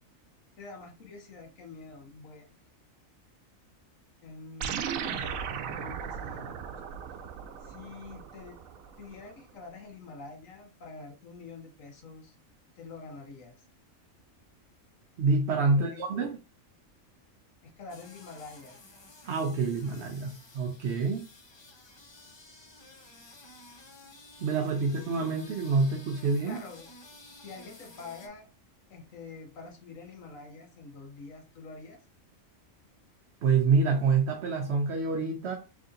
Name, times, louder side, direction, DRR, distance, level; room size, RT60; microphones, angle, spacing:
voice 1, 0.6-2.6 4.2-6.6 7.6-8.6 9.0-12.3 12.8-13.7 15.7-16.0 17.6-18.8 24.5-24.8 26.4-26.9 27.4-28.5 28.9-32.0, left 4 dB, 80° left, 2 dB, 1.4 m, -46 dB
sound 1, 4.6-9.3, right 8 dB, 85° right, 1.0 m, -37 dB
voice 2, 15.2-16.4 19.2-21.3 24.4-26.6 33.4-35.6, right 4 dB, 60° right, 3 dB, 0.9 m, -27 dB
sound 2, 17.9-28.3, left 2 dB, 35° left, 0.4 m, -53 dB
3.4 x 2.7 x 3.8 m, 0.31 s
omnidirectional pair, 1.4 m